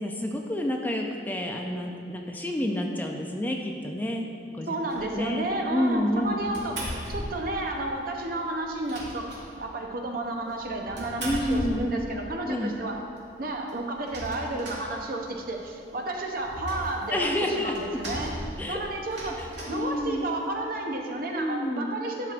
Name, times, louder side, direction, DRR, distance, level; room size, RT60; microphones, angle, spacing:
voice 1, 0.0-4.7 5.1-6.4 11.2-11.9 12.5-12.7 17.1-17.7 18.6-18.8 19.4-20.3 21.3-21.9, left 1 dB, 10° left, 1 dB, 0.4 m, -29 dB
voice 2, 4.7-13.0 13.4-18.3 18.7-22.3, right 2 dB, 55° right, 2 dB, 0.7 m, -32 dB
sound 1, 4.9-5.3 5.8-7.6 7.9-8.0 8.2-8.3 8.6-9.9 10.5-12.3 12.8-12.9 13.2-13.3 13.5-15.5 15.9-20.5, right 1 dB, 75° right, 1.8 m, -38 dB
11.0 x 5.9 x 2.5 m, 2.6 s
head